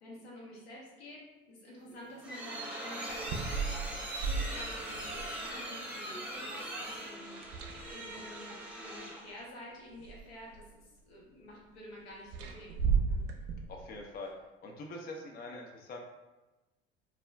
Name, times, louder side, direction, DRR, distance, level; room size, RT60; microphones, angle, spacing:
voice 1, 0.0-3.5 4.1-7.4 7.8-12.8 13.1-13.2, equal, 80° left, -4 dB, 0.9 m, -49 dB
sound 1, 1.8-9.4, right 1 dB, 5° right, 0.7 m, -41 dB
sound 2, 3.1-5.6 7.3-8.2 9.3-9.4 9.9-10.7 12.3-14.0, right 5 dB, 50° right, 0.5 m, -34 dB
voice 2, 13.7-14.3 14.6-16.0, left 2 dB, 30° left, 1 dB, 0.4 m, -43 dB
2.3 x 2.1 x 3.3 m, 1.1 s
hypercardioid pair, 70°, 31 cm